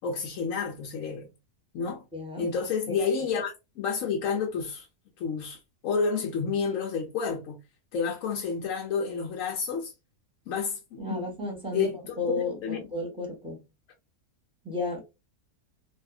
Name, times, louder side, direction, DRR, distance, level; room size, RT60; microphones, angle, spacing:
voice 1, 0.0-1.3 1.7-2.0 2.4-4.9 5.2-7.6 7.9-9.9 10.5-11.3 11.7-12.3 12.6-12.8, left 5 dB, 65° left, 0.9 m, -30 dB
voice 2, 2.1-2.5 2.9-3.0 11.0-13.6 14.6-15.0, left 2 dB, 5° right, 1.0 m, -33 dB
2.7 x 2.4 x 2.4 m
omnidirectional pair, 1.6 m